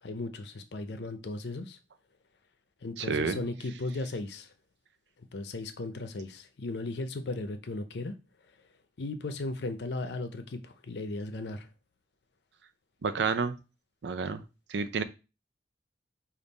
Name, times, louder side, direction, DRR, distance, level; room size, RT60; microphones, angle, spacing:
voice 1, 0.0-1.8 2.8-4.5 5.2-8.2 9.0-11.7, left 2 dB, 70° left, 0.6 m, -36 dB
voice 2, 3.0-3.4 13.0-13.6 14.0-14.4 14.7-15.0, right 5 dB, 80° right, 0.5 m, -29 dB
5.3 x 2.5 x 4.0 m
head